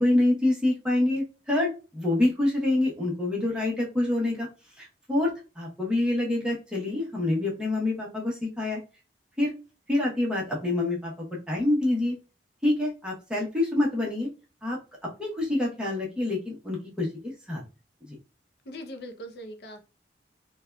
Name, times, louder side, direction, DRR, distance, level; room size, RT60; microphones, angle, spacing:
voice 1, 0.0-4.5 4.8-5.3 5.6-8.8 9.4-9.5 9.9-11.1 11.5-12.2 12.6-14.3 14.6-14.8 15.2-17.6, left 2 dB, 5° right, -4 dB, 0.8 m, -26 dB
voice 2, 18.7-19.8, equal, 65° left, 5 dB, 0.5 m, -40 dB
3.4 x 2.2 x 2.3 m, 0.32 s
head